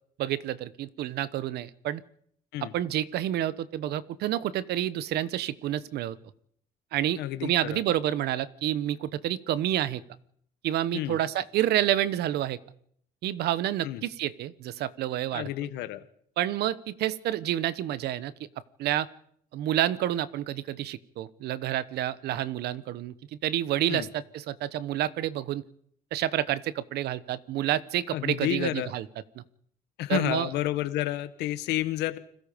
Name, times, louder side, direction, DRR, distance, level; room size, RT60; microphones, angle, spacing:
voice 1, 0.2-2.0 2.6-6.2 6.9-10.0 10.6-12.6 13.2-15.5 16.4-18.3 18.8-19.1 19.5-25.6 26.1-29.1 29.4-29.5 30.1-30.5, right 12 dB, 75° right, 16 dB, 1.2 m, -29 dB
voice 2, 7.2-7.8 10.9-11.2 13.8-14.0 15.3-16.0 23.9-24.1 28.1-28.9 30.0-32.2, left 14 dB, 85° left, 11 dB, 1.4 m, -30 dB
29.5 x 21.5 x 5.3 m, 0.69 s
cardioid pair, 110°, 17 cm